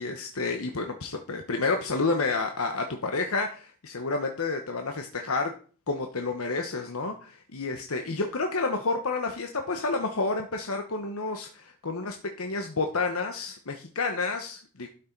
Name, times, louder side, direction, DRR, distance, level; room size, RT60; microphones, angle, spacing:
voice 1, 0.0-5.5 5.9-14.9, left 3 dB, 70° left, 4 dB, 1.1 m, -30 dB
12.0 x 6.3 x 4.6 m, 0.41 s
head